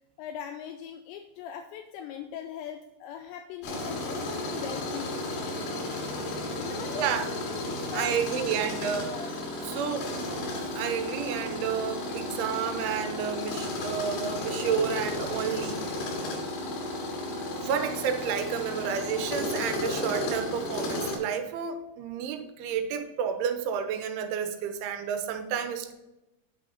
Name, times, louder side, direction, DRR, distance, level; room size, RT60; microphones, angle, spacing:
voice 1, 0.2-5.3 6.6-8.7 9.1-9.3, left 9 dB, 80° left, 4 dB, 2.7 m, -40 dB
Tools, 3.6-21.2, left 1 dB, 65° left, 3.6 m, -33 dB
voice 2, 7.0-7.3 7.9-9.3 9.6-10.1 10.7-16.0 17.6-25.9, right 7 dB, 90° right, 8 dB, 3.2 m, -31 dB
8.5 x 6.3 x 4.0 m, 0.97 s
omnidirectional pair, 5.4 m